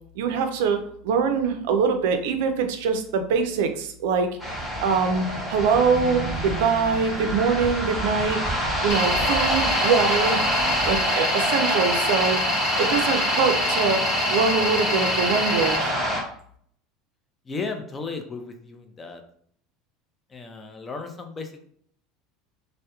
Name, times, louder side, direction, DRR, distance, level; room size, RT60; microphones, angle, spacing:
voice 1, 0.2-4.3 4.8-8.4 8.8-10.4 10.7-12.4 12.8-14.0 14.3-16.0, right 5 dB, 80° right, 6 dB, 0.3 m, -23 dB
sound 1, 4.4-16.2, equal, ahead, 0.9 m, -26 dB
sound 2, 8.9-15.8, left 1 dB, 55° left, 0.9 m, -27 dB
voice 2, 17.5-19.2 20.3-21.5, left 4 dB, 25° left, 5 dB, 0.4 m, -34 dB
2.2 x 2.0 x 2.9 m, 0.62 s
supercardioid pair, 115°, 0 cm